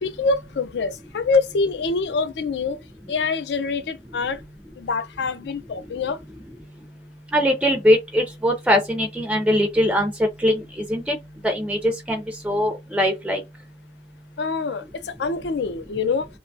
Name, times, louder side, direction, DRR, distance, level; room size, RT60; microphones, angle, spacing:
voice 1, 0.0-2.8 3.1-4.4 4.8-6.2 14.4-16.3, left 4 dB, 65° left, 0.4 m, -25 dB
voice 2, 7.3-10.1 10.4-10.5 10.9-11.2 11.4-13.4, equal, 5° right, 0.4 m, -21 dB
2.8 x 2.2 x 2.6 m
head